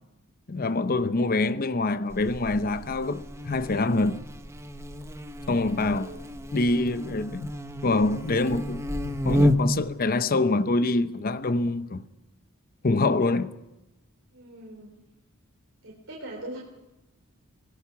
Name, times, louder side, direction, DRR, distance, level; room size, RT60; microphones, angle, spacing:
voice 1, 0.5-4.2 5.5-6.1 6.5-7.5 7.8-12.0 12.8-13.5, left 2 dB, 40° left, 0.7 m, -25 dB
Buzz, 2.1-9.9, equal, 10° right, 1.0 m, -31 dB
voice 2, 5.9-6.4 14.3-14.9 15.8-16.6, right 1 dB, 60° right, 3.8 m, -41 dB
24.0 x 18.0 x 6.0 m
head